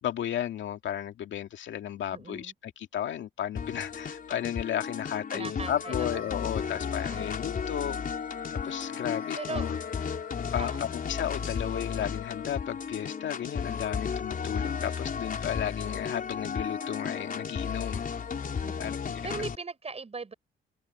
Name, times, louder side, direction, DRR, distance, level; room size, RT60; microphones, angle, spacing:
voice 1, 0.0-8.0 8.5-9.8 10.5-18.0 18.8-19.4, left 10 dB, 70° left, 2.3 m, -34 dB
voice 2, 2.1-2.5 5.3-6.4 7.0-7.4 9.4-9.7 10.6-10.9 18.6-20.3, right 4 dB, 30° right, 7.7 m, -39 dB
sound 1, 3.6-19.6, left 6 dB, 45° left, 4.5 m, -34 dB
Wind instrument woodwind instrument, 5.8-12.6, left 14 dB, 90° left, 6.6 m, -46 dB
cardioid pair, 90°, 20 cm